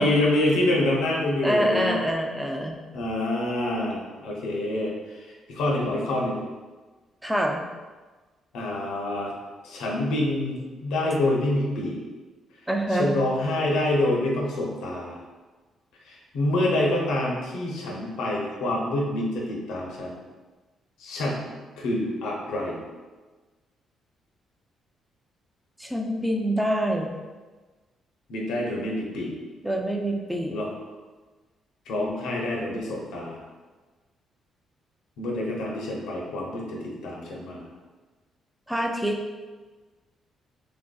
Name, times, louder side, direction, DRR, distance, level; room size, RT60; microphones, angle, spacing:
voice 1, 0.0-2.0 2.9-6.4 8.5-9.3 9.6-12.0 12.9-15.2 16.1-20.1 21.0-22.8 28.3-29.3 30.5-30.7 31.9-33.4 35.2-37.6, left 1 dB, 90° left, -2 dB, 0.6 m, -27 dB
voice 2, 1.4-2.8 7.2-7.6 12.7-13.1 25.8-27.1 29.6-30.6 38.7-39.2, equal, 5° right, 2 dB, 0.3 m, -25 dB
3.2 x 2.5 x 2.2 m, 1.3 s
cardioid pair, 90°, 0 cm